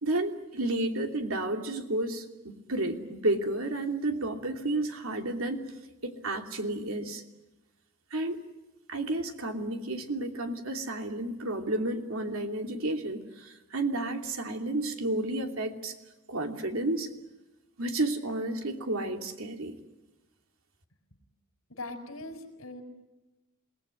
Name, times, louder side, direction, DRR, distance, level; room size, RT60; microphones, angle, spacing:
voice 1, 0.0-5.6 6.0-7.2 8.1-8.4 8.9-15.9 16.3-17.1 17.8-19.7, right 2 dB, 75° right, 4 dB, 2.9 m, -31 dB
voice 2, 21.7-22.8, left 2 dB, 70° left, 5 dB, 5.8 m, -41 dB
28.0 x 19.0 x 9.8 m, 1.1 s
head